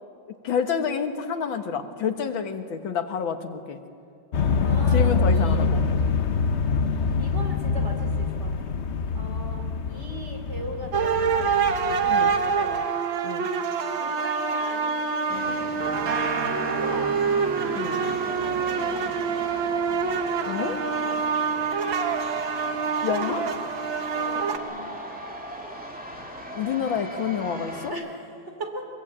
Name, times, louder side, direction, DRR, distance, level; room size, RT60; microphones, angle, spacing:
voice 1, 0.3-3.8 4.9-5.8 12.1-12.3 13.2-13.5 17.7-18.0 20.5-20.8 23.0-23.5 26.6-27.9, left 7 dB, 90° left, 7 dB, 2.2 m, -28 dB
sound 1, 4.3-12.8, left 5 dB, 50° left, 0.9 m, -25 dB
voice 2, 4.6-5.6 7.2-8.8 9.1-12.8 13.9-15.7 16.5-17.2 17.8-19.0 20.8-21.7 24.1-25.0 27.9-28.9, right 1 dB, 35° right, 3 dB, 3.4 m, -39 dB
sound 2, 10.9-24.6, right 5 dB, 85° right, 2.1 m, -26 dB
sound 3, 15.3-27.9, equal, 5° right, 2.7 m, -38 dB
23.0 x 22.5 x 8.9 m, 2.5 s
omnidirectional pair, 2.1 m